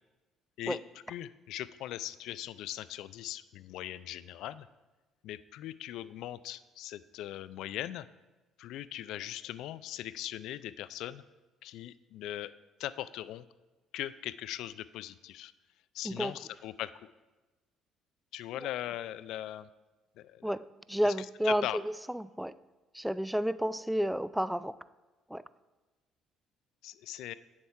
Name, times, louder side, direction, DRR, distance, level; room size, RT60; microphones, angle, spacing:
voice 1, 1.1-4.7 5.2-8.1 8.6-11.2 11.6-12.5 12.8-13.4 13.9-15.5 15.9-16.9 18.3-19.7 20.2-20.5 21.4-21.8 26.8-27.3, left 13 dB, 70° left, 16 dB, 0.3 m, -40 dB
voice 2, 20.4-22.5 22.9-24.8 25.3-25.4, equal, 5° right, 16 dB, 0.4 m, -31 dB
8.6 x 7.1 x 4.6 m, 1.2 s
hypercardioid pair, 55°, 0 cm